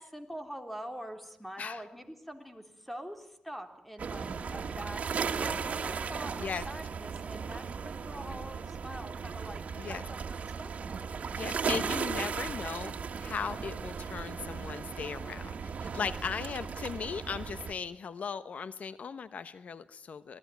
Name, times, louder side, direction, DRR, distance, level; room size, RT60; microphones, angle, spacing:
voice 1, 0.0-5.1 5.4-9.6 9.9-11.3 16.0-16.6, equal, 5° left, 6 dB, 3.8 m, -45 dB
sound 1, 4.0-17.7, right 6 dB, 75° right, 2.0 m, -36 dB
voice 2, 11.3-12.9 13.2-20.4, left 6 dB, 80° left, 13 dB, 1.0 m, -37 dB
26.5 x 19.0 x 9.4 m, 0.73 s
wide cardioid pair, 100°, 2 cm